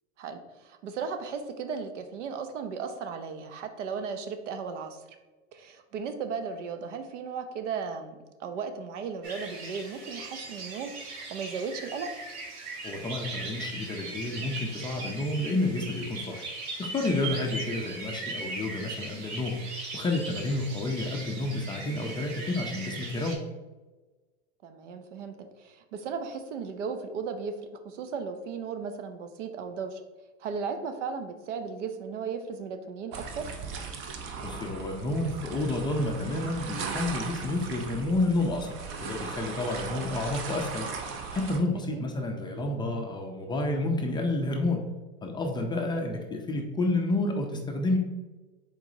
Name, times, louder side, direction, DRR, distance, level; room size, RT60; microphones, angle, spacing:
voice 1, 0.2-5.0 5.5-8.1 8.4-12.1 24.6-27.5 27.8-30.0 30.4-33.5 41.9-42.0, right 5 dB, 80° right, 8 dB, 0.7 m, -36 dB
sound 1, 9.2-23.4, right 3 dB, 60° right, 1.2 m, -39 dB
voice 2, 12.8-16.4 16.8-19.6 19.9-23.4 34.4-40.9 41.3-44.8 45.2-48.0, left 2 dB, 15° left, 2 dB, 0.4 m, -30 dB
sound 2, 33.1-41.6, right 5 dB, 35° right, 0.6 m, -38 dB
4.6 x 4.0 x 2.6 m, 1.2 s
hypercardioid pair, 120°, 36 cm